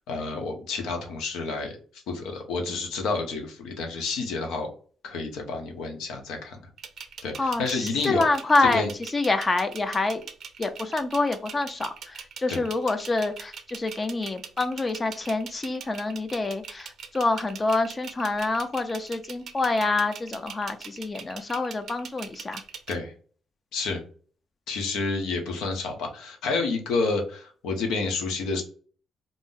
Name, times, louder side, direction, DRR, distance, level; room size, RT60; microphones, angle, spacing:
voice 1, 0.1-1.7 2.1-4.7 5.0-6.6 7.2-8.2 8.6-8.9 12.5-12.6 22.9-23.1 23.7-24.0 24.7-28.6, left 3 dB, 90° left, 3 dB, 0.7 m, -29 dB
sound 1, 6.8-22.9, right 7 dB, 60° right, 0.5 m, -41 dB
voice 2, 7.4-8.9 9.1-10.2 10.6-22.6, left 3 dB, 30° left, 9 dB, 0.4 m, -26 dB
2.5 x 2.0 x 3.7 m, 0.42 s
cardioid pair, 90°, 0 cm